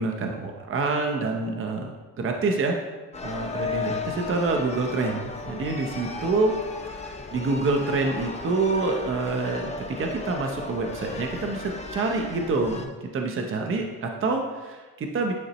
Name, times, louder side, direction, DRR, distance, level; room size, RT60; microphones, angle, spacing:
voice 1, 0.0-1.9 2.2-2.8 3.2-6.5 6.9-15.3, right 3 dB, 35° right, 3 dB, 0.7 m, -27 dB
sound 1, 3.1-12.9, left 3 dB, 20° left, 0.6 m, -35 dB
9.6 x 3.9 x 3.0 m, 1.3 s
cardioid pair, 110°, 35 cm